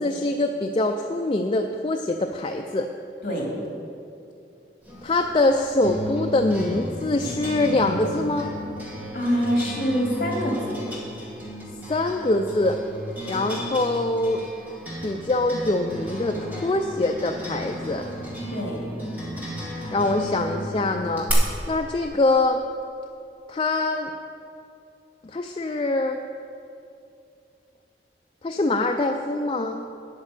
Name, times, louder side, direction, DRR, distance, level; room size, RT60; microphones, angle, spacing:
voice 1, 0.0-2.9 5.0-8.5 11.9-12.8 13.3-14.4 15.0-18.1 19.9-21.3 21.7-22.6 23.5-24.1 25.2-26.2 28.4-29.9, left 2 dB, 30° left, 4 dB, 0.4 m, -24 dB
sound 1, 4.9-21.3, equal, 10° right, 1.9 m, -34 dB
voice 2, 9.1-10.8 18.5-18.8, equal, 50° left, -1 dB, 2.6 m, -25 dB
9.5 x 8.4 x 6.6 m, 2.6 s
head